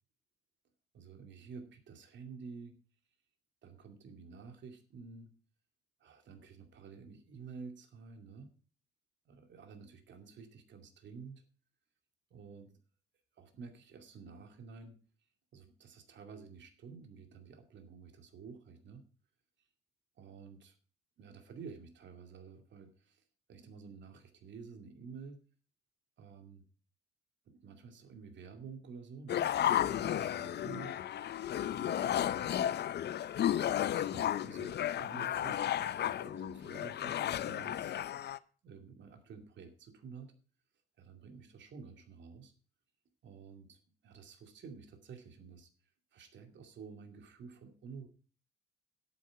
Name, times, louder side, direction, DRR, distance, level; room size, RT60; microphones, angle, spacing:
voice 1, 0.9-2.8 3.6-5.3 6.0-8.5 9.3-11.4 12.3-12.8 13.4-15.0 15.5-19.0 20.2-20.8 21.2-23.2 23.5-25.4 26.2-26.6 27.5-30.9 31.6-32.5 33.5-38.2 38.6-40.3 41.0-42.5 43.2-45.7 46.1-48.1, right 5 dB, 65° right, 6 dB, 2.5 m, -51 dB
sound 1, 29.3-38.4, left 11 dB, 60° left, 0.6 m, -33 dB
11.0 x 9.0 x 4.7 m, 0.40 s
cardioid pair, 90°, 20 cm